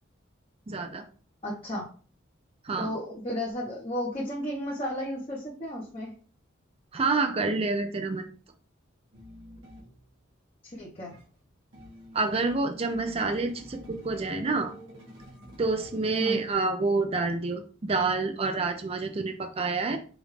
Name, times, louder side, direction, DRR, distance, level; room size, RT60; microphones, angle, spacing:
voice 1, 0.7-1.0 2.6-2.9 6.9-8.3 12.1-14.7 15.6-20.0, right 3 dB, 30° right, 7 dB, 0.4 m, -28 dB
voice 2, 1.4-1.9 2.8-6.1 10.6-11.1 16.2-16.4, equal, 30° left, -5 dB, 1.0 m, -33 dB
sound 1, 9.1-10.2 11.1-16.5, equal, 80° right, 1.5 m, -48 dB
5.0 x 2.6 x 3.3 m, 0.40 s
head